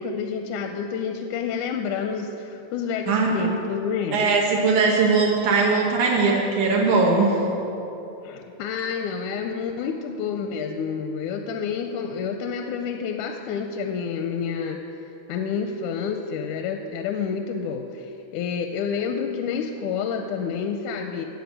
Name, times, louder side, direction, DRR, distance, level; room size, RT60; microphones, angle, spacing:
voice 1, 0.0-4.3 8.2-14.8 15.3-21.3, left 6 dB, 90° left, 5 dB, 2.1 m, -29 dB
voice 2, 3.1-3.5 4.1-7.4, right 4 dB, 85° right, -2 dB, 2.7 m, -20 dB
15.5 x 5.3 x 9.4 m, 3.0 s
omnidirectional pair, 3.4 m